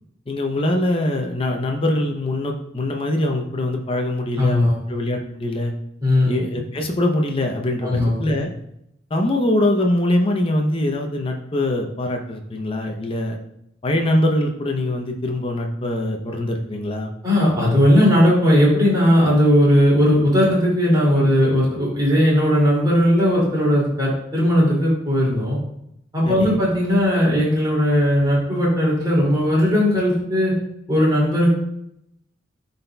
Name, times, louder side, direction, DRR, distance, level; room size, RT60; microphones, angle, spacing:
voice 1, 0.3-5.7 6.2-8.5 9.1-13.4 13.8-17.1 26.2-26.6, left 1 dB, 30° left, 2 dB, 0.6 m, -23 dB
voice 2, 4.4-4.8 6.0-6.3 7.8-8.2 17.2-25.6 26.1-30.5 30.9-31.5, equal, 20° right, -5 dB, 2.4 m, -17 dB
10.5 x 4.1 x 2.2 m, 0.78 s
head